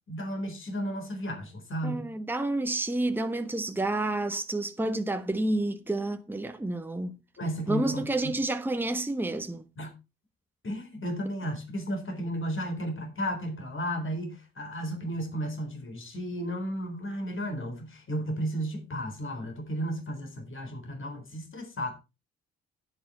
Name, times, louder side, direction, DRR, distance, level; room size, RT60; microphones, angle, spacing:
voice 1, 0.1-2.1 7.4-8.3 9.8-9.9 10.6-21.9, equal, 40° left, 4.2 m, -34 dB
voice 2, 1.8-7.2 7.7-9.6, right 2 dB, 5° right, 1.2 m, -29 dB
10.0 x 9.3 x 4.2 m
hypercardioid pair, 50°, 31 cm